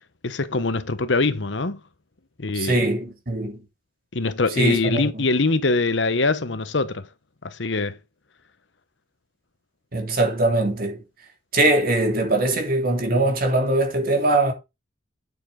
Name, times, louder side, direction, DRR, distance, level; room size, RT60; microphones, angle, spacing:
voice 1, 0.2-1.8 2.4-2.9 4.1-7.1 7.4-8.0, left 3 dB, 70° left, 1.0 m, -23 dB
voice 2, 2.5-3.6 4.6-5.0 9.9-11.0 11.5-14.5, right 2 dB, 50° right, 3.4 m, -21 dB
9.2 x 8.1 x 3.9 m
head